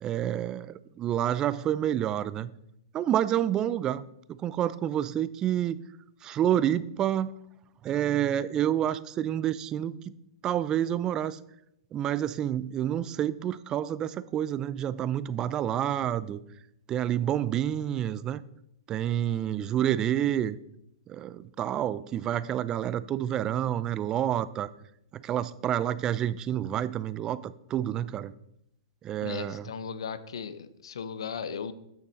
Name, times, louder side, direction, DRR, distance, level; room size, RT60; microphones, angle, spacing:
voice 1, 0.0-2.5 2.9-4.0 4.3-5.8 6.2-7.3 7.8-10.1 10.4-11.4 11.9-16.4 16.9-18.4 18.9-20.6 21.1-24.7 25.1-28.3 29.0-29.7, right 11 dB, 25° right, 17 dB, 0.4 m, -28 dB
voice 2, 29.2-31.7, left 6 dB, 80° left, 14 dB, 0.6 m, -36 dB
8.6 x 6.5 x 4.2 m, 0.79 s
hypercardioid pair, 135°, 3 cm